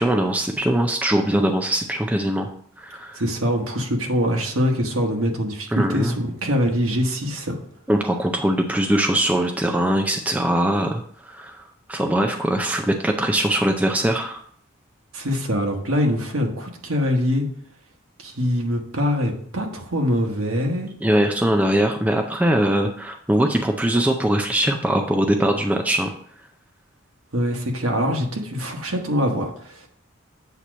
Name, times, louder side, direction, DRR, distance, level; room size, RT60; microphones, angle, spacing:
voice 1, 0.0-2.5 2.8-3.2 5.7-6.1 7.9-11.6 11.9-14.4 21.0-26.1, right 1 dB, 5° right, 3 dB, 0.4 m, -21 dB
voice 2, 3.1-7.6 15.1-17.4 18.2-20.9 27.3-29.9, equal, 80° right, 1 dB, 1.2 m, -23 dB
8.1 x 2.9 x 6.1 m, 0.62 s
head